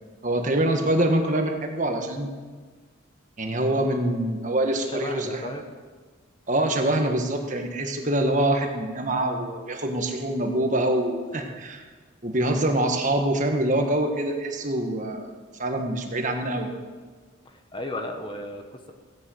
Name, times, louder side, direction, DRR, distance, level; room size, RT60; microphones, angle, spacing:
voice 1, 0.2-2.3 3.4-5.4 6.5-11.8 12.2-15.3 15.6-16.7, right 1 dB, 40° right, 3 dB, 1.6 m, -25 dB
voice 2, 4.8-5.6 12.4-12.7 17.4-18.9, left 1 dB, 25° left, 5 dB, 1.1 m, -35 dB
17.0 x 10.0 x 8.0 m, 1.5 s
head